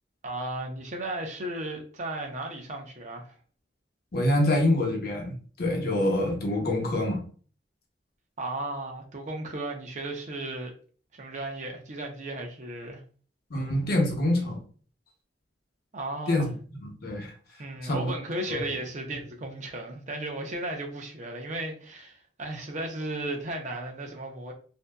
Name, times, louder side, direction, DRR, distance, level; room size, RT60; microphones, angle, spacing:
voice 1, 0.2-3.4 8.4-10.7 11.1-13.0 15.9-16.5 17.6-24.5, right 2 dB, 40° right, 0.6 m, -35 dB
voice 2, 4.1-7.2 13.5-14.6 16.3-16.5 16.8-17.3 17.8-18.1 18.5-18.6, left 1 dB, 55° left, 0.8 m, -26 dB
2.6 x 2.6 x 2.2 m
head